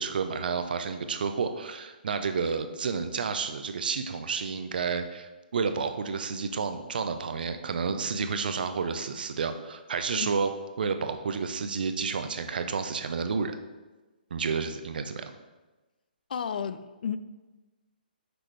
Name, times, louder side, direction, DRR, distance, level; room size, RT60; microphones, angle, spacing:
voice 1, 0.0-10.5 10.8-13.6 14.3-15.3, right 5 dB, 65° right, 0.6 m, -30 dB
voice 2, 16.3-17.2, left 7 dB, 60° left, 0.4 m, -32 dB
6.0 x 5.0 x 3.3 m
hypercardioid pair, 145°, 5 cm